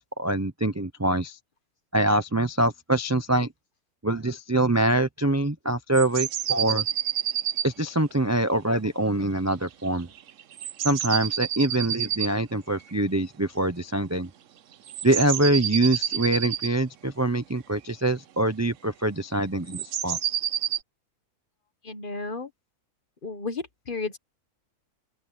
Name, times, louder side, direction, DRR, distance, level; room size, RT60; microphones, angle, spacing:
voice 1, 0.0-1.4 1.9-3.5 4.0-6.8 7.6-10.1 10.8-14.3 15.0-20.2, right 2 dB, 20° right, 0.5 m, -24 dB
sound 1, 5.9-7.7 10.2-12.3 12.9-13.0 14.9-16.7 19.7-20.8, right 10 dB, 60° right, 1.0 m, -29 dB
voice 2, 21.8-22.5 23.2-24.2, left 4 dB, 35° left, 1.3 m, -33 dB
open air
omnidirectional pair, 1.7 m